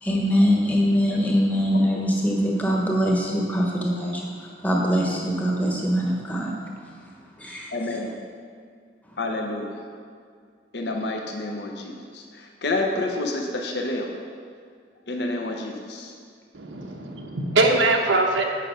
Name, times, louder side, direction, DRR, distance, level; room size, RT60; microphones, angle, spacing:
voice 1, 0.0-6.5 7.4-8.0, equal, 10° left, -2 dB, 1.0 m, -23 dB
voice 2, 7.7-8.2 9.2-9.8 10.7-14.1 15.1-16.1, left 2 dB, 70° left, 1 dB, 0.8 m, -29 dB
voice 3, 16.5-18.4, right 2 dB, 90° right, 1 dB, 1.0 m, -22 dB
8.4 x 5.6 x 5.1 m, 2.1 s
head